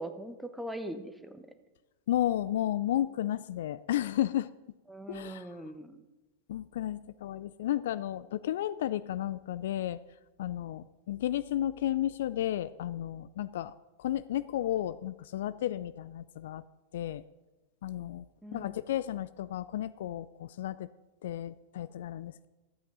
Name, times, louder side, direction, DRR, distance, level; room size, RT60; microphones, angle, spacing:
voice 1, 0.0-1.5 4.9-6.0 18.4-18.7, right 1 dB, 5° right, 9 dB, 1.0 m, -41 dB
voice 2, 2.1-4.5 5.1-5.5 6.5-10.0 10.4-13.7 14.0-16.6 16.9-17.2 17.8-18.3 18.5-20.9 21.2-22.5, left 12 dB, 55° left, 16 dB, 0.3 m, -33 dB
13.0 x 8.4 x 5.3 m, 1.1 s
figure-of-eight pair, 90°, 0 cm